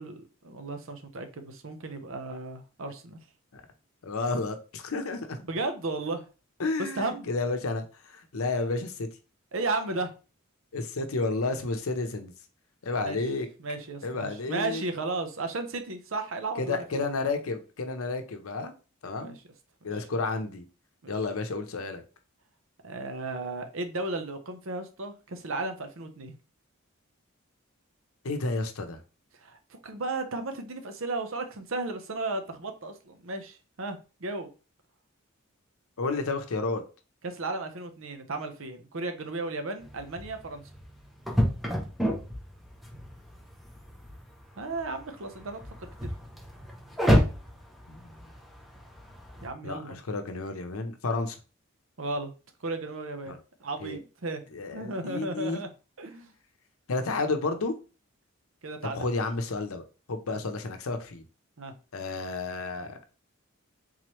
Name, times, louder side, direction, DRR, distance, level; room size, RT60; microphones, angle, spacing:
voice 1, 0.0-3.2 5.5-6.2 6.8-7.3 9.5-10.1 13.0-13.2 13.6-17.0 19.2-19.4 21.0-21.1 22.8-26.4 29.4-34.5 37.2-40.6 44.6-46.2 49.4-50.0 52.0-52.3 52.6-54.4 54.7-55.7 56.0-56.3 58.6-59.1 61.6-61.7, right 2 dB, 70° right, 7 dB, 0.7 m, -34 dB
voice 2, 4.0-5.4 6.6-9.1 10.7-12.3 12.8-13.5 14.0-14.8 16.6-18.7 19.0-19.3 19.8-20.6 21.1-22.0 28.2-29.0 36.0-36.8 47.9-48.3 49.6-51.4 53.3-53.4 53.8-54.0 54.5-55.6 56.9-57.7 58.9-59.8 60.1-61.2 61.9-63.0, left 3 dB, 90° left, 7 dB, 0.7 m, -31 dB
sound 1, 39.8-49.5, equal, ahead, 0.8 m, -31 dB
3.9 x 3.0 x 3.1 m, 0.33 s
head